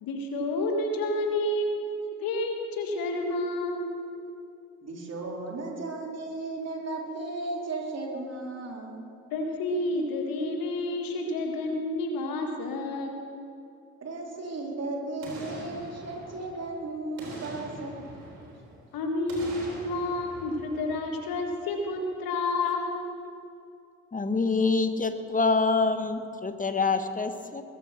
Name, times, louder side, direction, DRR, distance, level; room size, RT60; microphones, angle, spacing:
voice 1, 0.0-3.9 9.3-13.2 18.9-23.1, left 2 dB, 60° left, 3 dB, 1.8 m, -30 dB
voice 2, 4.8-9.1 14.0-18.0, right 2 dB, 40° right, -1 dB, 3.8 m, -35 dB
Boom, 15.2-16.7 17.2-18.8 19.3-21.5 21.9-22.0, right 1 dB, 75° right, 3.8 m, -44 dB
voice 3, 24.1-27.6, left 3 dB, 20° left, 9 dB, 1.4 m, -26 dB
21.0 x 8.6 x 6.0 m, 2.6 s
hypercardioid pair, 45°, 38 cm